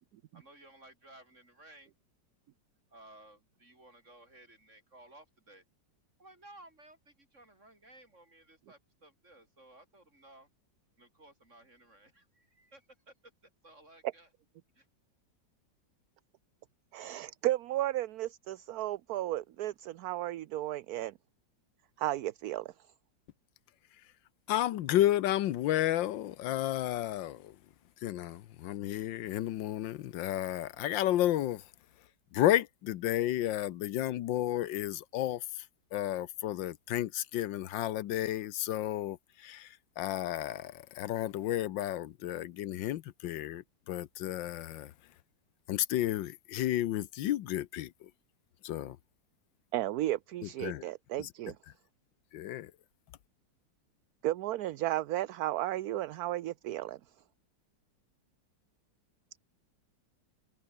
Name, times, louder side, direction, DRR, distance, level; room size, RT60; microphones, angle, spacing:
voice 1, 0.3-1.9 2.9-5.6 6.2-10.5 11.0-13.3 13.6-14.3 14.7-14.9, right 1 dB, 40° right, 7.3 m, -57 dB
voice 2, 16.9-21.1 22.0-22.7 49.7-51.6 54.2-57.0, right 14 dB, 65° right, 1.0 m, -34 dB
voice 3, 24.5-27.6 28.0-31.6 32.3-35.6 35.9-44.9 45.7-48.1 48.6-49.0 50.6-50.8 51.2-51.3 52.3-52.7, left 13 dB, 85° left, 1.5 m, -32 dB
omnidirectional pair, 2.0 m